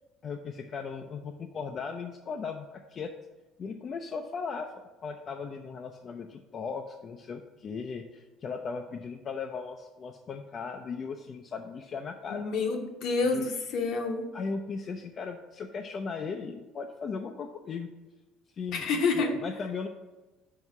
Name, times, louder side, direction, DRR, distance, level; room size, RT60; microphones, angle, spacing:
voice 1, 0.2-3.1 3.6-4.7 5.0-12.5 13.3-13.5 14.3-17.9 18.6-19.9, left 5 dB, 45° left, 4 dB, 0.5 m, -37 dB
voice 2, 12.3-14.2 18.7-19.3, left 4 dB, 65° left, 4 dB, 1.0 m, -28 dB
4.8 x 4.7 x 5.4 m, 1.1 s
supercardioid pair, 90°, 0 cm